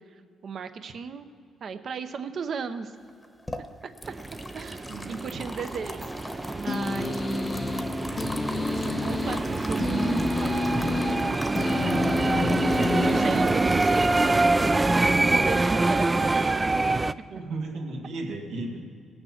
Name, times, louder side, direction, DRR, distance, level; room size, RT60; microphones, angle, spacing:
voice 1, 0.4-1.3 1.6-2.9 4.5-7.6 8.7-11.3 11.6-14.8 15.2-16.5, right 5 dB, 55° right, 9 dB, 0.8 m, -35 dB
sound 1, 3.1-16.1, left 1 dB, 15° left, 1.0 m, -42 dB
sound 2, 4.0-17.1, right 2 dB, 20° right, 0.3 m, -25 dB
sound 3, 6.7-14.1, left 4 dB, 35° left, 0.5 m, -30 dB
voice 2, 17.3-18.8, right 2 dB, 80° right, 1 dB, 1.5 m, -34 dB
18.5 x 6.6 x 5.9 m, 2.4 s
cardioid pair, 90°, 0 cm